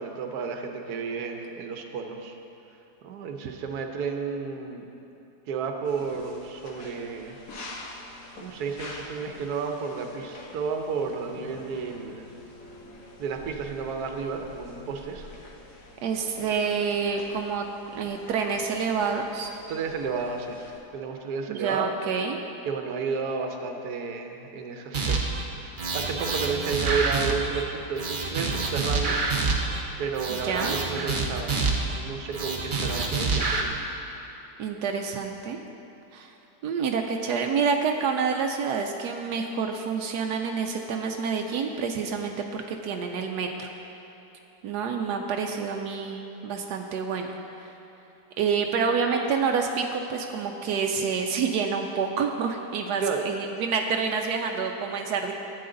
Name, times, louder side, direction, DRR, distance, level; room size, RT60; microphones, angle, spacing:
voice 1, 0.0-2.4 3.0-4.8 5.5-7.4 8.3-12.3 13.2-15.3 19.7-22.0 22.7-29.2 30.0-31.5 31.8-33.9 53.0-53.2, right 5 dB, 75° right, 4 dB, 1.3 m, -32 dB
sound 1, 5.8-20.8, left 2 dB, 60° left, 1.4 m, -46 dB
voice 2, 16.0-17.7 17.9-19.5 21.5-22.4 30.3-30.8 34.6-35.6 36.1-36.3 36.6-43.7 44.6-47.3 47.6-47.7 48.4-55.3, right 5 dB, 90° right, 3 dB, 1.2 m, -28 dB
sound 2, 24.9-25.4 25.8-27.6 28.0-29.8 30.1-32.0 32.3-33.6, right 3 dB, 40° right, 0.8 m, -27 dB
12.5 x 8.5 x 3.8 m, 2.9 s
omnidirectional pair, 1.7 m